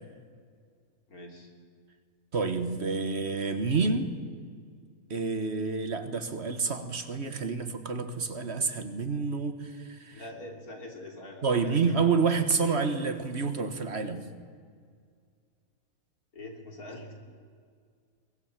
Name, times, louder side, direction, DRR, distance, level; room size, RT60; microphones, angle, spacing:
voice 1, 1.1-1.5 10.1-12.0 16.3-17.1, left 1 dB, 90° left, 1 dB, 3.8 m, -44 dB
voice 2, 2.3-4.1 5.1-10.2 11.4-14.2, right 4 dB, 50° right, 8 dB, 1.7 m, -28 dB
23.5 x 18.5 x 7.4 m, 2.1 s
omnidirectional pair, 1.5 m